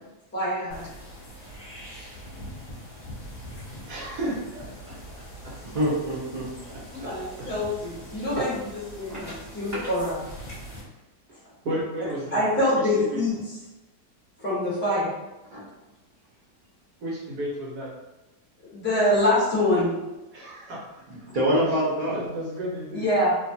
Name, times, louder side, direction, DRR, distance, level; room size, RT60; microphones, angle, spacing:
voice 1, 0.3-0.9 6.9-8.5 9.0-10.2 12.3-13.3 14.4-15.1 18.7-19.9 22.9-23.3, left 1 dB, 10° left, -8 dB, 0.7 m, -24 dB
sound 1, 0.7-10.8, equal, 35° left, 1.2 m, -42 dB
voice 2, 3.9-4.9 5.4-5.8 6.7-7.1 7.4-7.5 8.4-8.5 9.0-9.2 11.6-12.4 13.1-13.2 17.0-17.9 20.3-20.8 22.1-23.1, right 1 dB, 70° right, -5 dB, 1.3 m, -33 dB
voice 3, 5.6-6.5 9.1-9.3 9.7-9.8 15.5-15.6 21.1-22.2, equal, 50° right, -9 dB, 0.5 m, -25 dB
2.9 x 2.3 x 2.6 m, 1.0 s
omnidirectional pair, 1.8 m